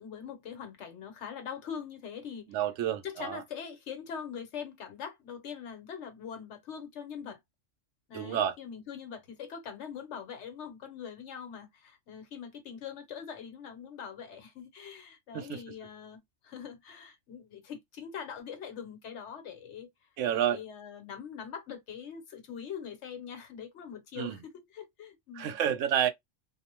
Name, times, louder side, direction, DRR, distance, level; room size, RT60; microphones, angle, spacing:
voice 1, 0.0-2.6 3.0-7.4 8.1-19.9 20.3-25.6, left 7 dB, 65° left, 1.1 m, -43 dB
voice 2, 2.5-3.4 8.1-8.5 15.3-15.6 20.2-20.6 24.2-24.4 25.4-26.1, right 10 dB, 80° right, 0.9 m, -29 dB
2.6 x 2.1 x 2.9 m
omnidirectional pair, 1.3 m